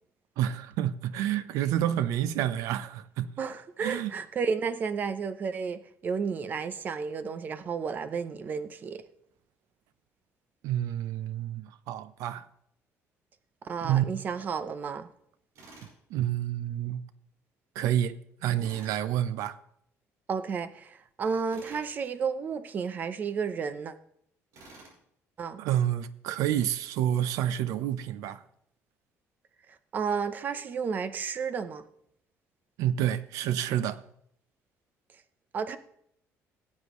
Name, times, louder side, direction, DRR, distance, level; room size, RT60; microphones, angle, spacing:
voice 1, 0.4-3.4 3.8-4.1 10.6-12.4 13.8-14.0 16.1-17.0 17.7-19.6 25.6-28.4 32.8-34.0, right 11 dB, 90° right, 0.7 m, -29 dB
voice 2, 3.4-9.0 13.6-15.1 20.3-23.9 25.4-25.6 29.9-31.8 35.5-35.8, right 5 dB, 30° right, 0.7 m, -32 dB
Tools, 15.5-16.0 18.6-19.0 21.5-21.9 24.5-25.0, right 2 dB, 70° right, 5.3 m, -50 dB
18.0 x 8.4 x 3.1 m
cardioid pair, 165°, 6 cm